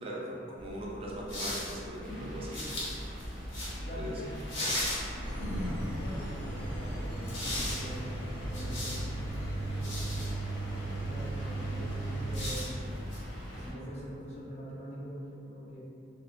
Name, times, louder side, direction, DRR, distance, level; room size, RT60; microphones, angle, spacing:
voice 1, 0.0-3.0 4.0-4.3, right 1 dB, 30° right, -4 dB, 0.3 m, -40 dB
sound 1, 0.6-5.6 7.1-10.3 12.1-13.3, left 1 dB, 90° left, 1.0 m, -39 dB
voice 2, 1.8-2.3 3.8-4.5 5.4-10.2 10.9-13.0 13.5-15.8, equal, 35° left, -6 dB, 0.6 m, -43 dB
sound 2, 2.0-13.7, equal, ahead, 1.0 m, -42 dB
Engine, 5.2-12.4, right 2 dB, 70° left, 0.7 m, -37 dB
4.2 x 2.1 x 2.5 m, 2.5 s
head